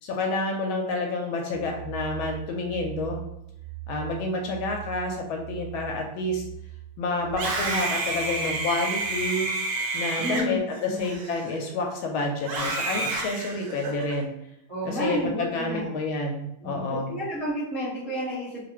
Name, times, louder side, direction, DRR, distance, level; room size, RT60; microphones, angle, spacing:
voice 1, 0.0-3.2 3.9-6.4 7.0-9.5 9.9-14.3 14.8-17.2, left 2 dB, 75° left, 2 dB, 1.3 m, -29 dB
sound 1, 1.5-9.3, right 16 dB, 60° left, 1.1 m, -41 dB
Screaming, 7.3-11.8 12.4-14.1, right 2 dB, 70° right, 0.9 m, -30 dB
voice 2, 10.2-10.6 10.9-11.1 14.7-15.9 16.6-18.6, equal, 30° right, -11 dB, 0.5 m, -31 dB
3.3 x 2.4 x 2.9 m, 0.81 s
omnidirectional pair, 2.4 m